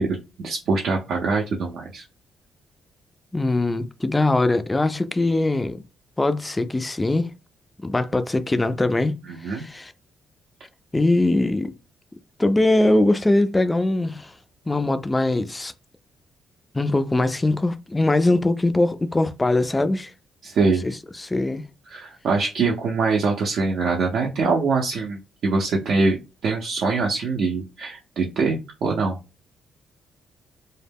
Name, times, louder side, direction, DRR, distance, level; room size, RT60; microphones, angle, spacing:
voice 1, 0.0-2.0 9.2-9.6 20.4-20.8 21.9-29.2, right 4 dB, 70° right, 0.5 m, -23 dB
voice 2, 3.3-5.8 6.2-7.3 7.8-9.9 10.9-11.7 12.4-14.3 14.7-15.7 16.7-20.1 20.8-21.6, left 2 dB, 15° left, 0.3 m, -21 dB
2.1 x 2.1 x 3.4 m
cardioid pair, 90°, 0 cm